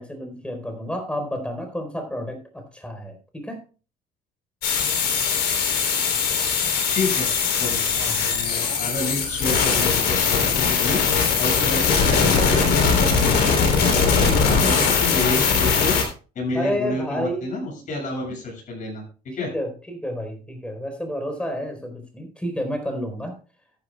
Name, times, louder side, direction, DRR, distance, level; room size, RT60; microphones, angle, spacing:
voice 1, 0.0-3.6 7.9-8.3 14.2-14.9 16.5-17.6 19.4-23.3, equal, 5° left, 4 dB, 4.2 m, -30 dB
sound 1, 4.6-16.0, left 5 dB, 70° left, 3.7 m, -20 dB
voice 2, 6.9-7.3 7.5-7.8 8.2-11.0 11.4-16.0 16.4-19.5, left 3 dB, 50° left, -1 dB, 7.0 m, -29 dB
14.0 x 11.0 x 2.4 m, 0.35 s
cardioid pair, 110°, 17 cm